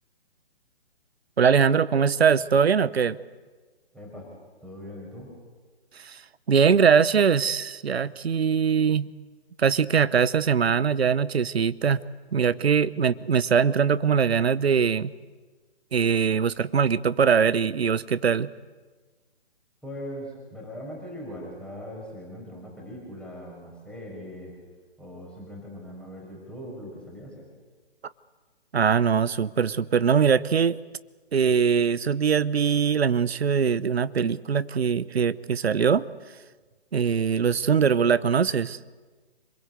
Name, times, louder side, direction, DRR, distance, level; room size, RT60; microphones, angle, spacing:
voice 1, 1.4-3.2 6.0-6.2 6.5-9.1 9.6-12.0 12.3-15.1 15.9-18.5 28.7-30.8 31.3-36.0 36.9-38.8, right 6 dB, 70° right, 16 dB, 0.9 m, -22 dB
voice 2, 3.9-4.3 4.6-5.3 19.8-24.5 25.0-27.4, equal, 5° left, -2 dB, 5.6 m, -40 dB
26.5 x 21.5 x 8.1 m, 1.4 s
figure-of-eight pair, 140°, 32 cm